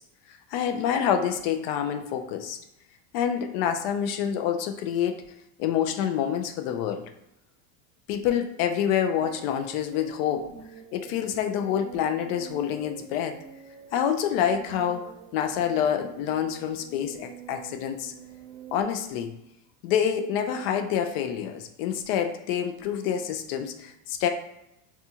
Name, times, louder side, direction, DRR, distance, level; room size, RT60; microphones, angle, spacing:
voice 1, 0.5-2.6 3.1-5.2 5.6-7.0 8.1-10.5 10.9-13.4 13.9-18.1 18.7-19.3 19.8-24.3, left 9 dB, 50° left, 6 dB, 0.4 m, -27 dB
sound 1, 9.1-18.8, right 6 dB, 90° right, 0.7 m, -46 dB
4.1 x 2.3 x 2.7 m, 0.83 s
cardioid pair, 180°, 38 cm